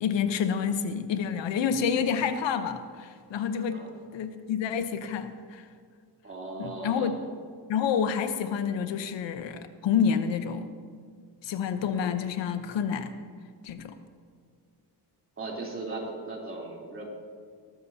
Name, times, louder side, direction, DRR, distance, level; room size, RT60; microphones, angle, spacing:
voice 1, 0.0-3.8 4.1-5.7 6.6-7.2 7.7-10.7 11.4-13.1 13.6-13.9, left 7 dB, 80° left, 9 dB, 1.0 m, -28 dB
voice 2, 6.2-7.1 15.4-17.2, right 3 dB, 30° right, -2 dB, 3.4 m, -37 dB
18.5 x 14.0 x 2.8 m, 2.1 s
cardioid pair, 125°, 44 cm